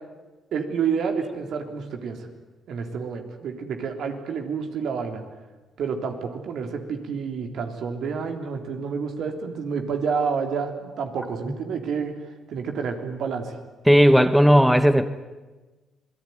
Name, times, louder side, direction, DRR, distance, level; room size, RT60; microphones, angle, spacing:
voice 1, 0.5-2.2 2.7-5.2 5.8-12.1 12.5-13.6, right 6 dB, 70° right, 4 dB, 3.5 m, -29 dB
voice 2, 13.9-15.1, equal, ahead, 10 dB, 1.2 m, -15 dB
26.5 x 19.0 x 9.4 m, 1.2 s
cardioid pair, 90°, 0 cm